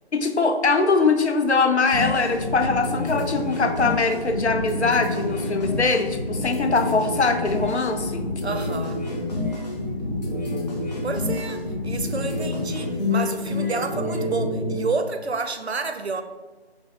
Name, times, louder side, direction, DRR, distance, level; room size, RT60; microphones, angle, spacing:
voice 1, 0.1-8.2, left 4 dB, 85° left, 7 dB, 0.6 m, -22 dB
sound 1, 1.9-14.8, left 2 dB, 40° left, 1.1 m, -28 dB
voice 2, 8.4-9.0 11.0-16.2, right 4 dB, 75° right, 7 dB, 0.6 m, -29 dB
5.8 x 2.0 x 3.6 m, 1.2 s
figure-of-eight pair, 165°, 33 cm